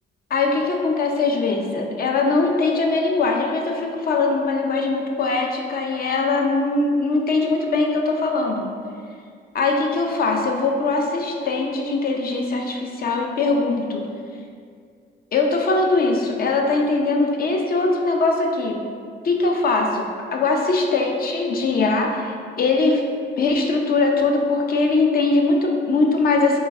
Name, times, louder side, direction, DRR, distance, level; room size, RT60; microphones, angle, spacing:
voice 1, 0.3-8.7 9.5-14.0 15.3-18.8 19.2-23.0 23.4-26.6, left 3 dB, 50° left, 1 dB, 0.6 m, -21 dB
3.2 x 3.2 x 3.5 m, 2.2 s
cardioid pair, 90°, 20 cm